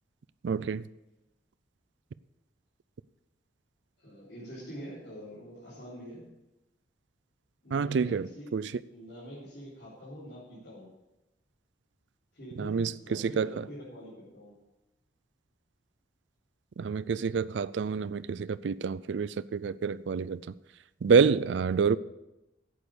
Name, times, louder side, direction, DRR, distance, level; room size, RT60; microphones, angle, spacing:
voice 1, 0.4-0.8 7.7-8.7 12.6-13.6 16.8-20.4 21.0-22.0, right 5 dB, 85° right, 0.4 m, -27 dB
voice 2, 4.0-6.3 7.6-8.5 8.9-10.9 12.3-14.5, equal, 65° left, 4.1 m, -45 dB
11.5 x 8.4 x 6.7 m
head